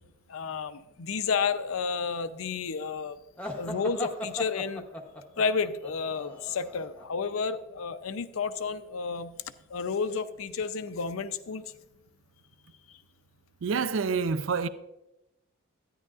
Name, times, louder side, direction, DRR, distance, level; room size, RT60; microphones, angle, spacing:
voice 1, 0.3-3.2 3.5-4.9 5.4-9.3 9.7-11.6, left 5 dB, 90° left, 0.6 m, -31 dB
sound 1, 3.4-7.1, left 1 dB, 5° left, 0.8 m, -38 dB
voice 2, 13.6-14.7, right 5 dB, 70° right, 0.4 m, -27 dB
13.0 x 9.9 x 2.4 m
head